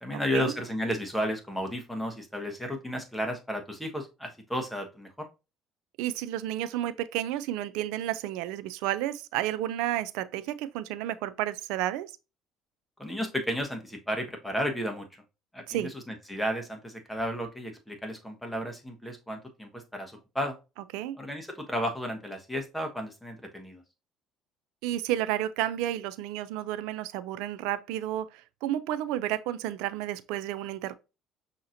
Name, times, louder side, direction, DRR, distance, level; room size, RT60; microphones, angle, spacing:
voice 1, 0.0-5.3 13.0-15.1 15.5-20.6 21.2-23.8, equal, 5° left, 1.2 m, -33 dB
voice 2, 6.0-12.1 15.7-15.9 20.9-21.2 24.8-30.9, right 13 dB, 80° right, 0.3 m, -31 dB
5.7 x 2.8 x 2.6 m
supercardioid pair, 85°, 0 cm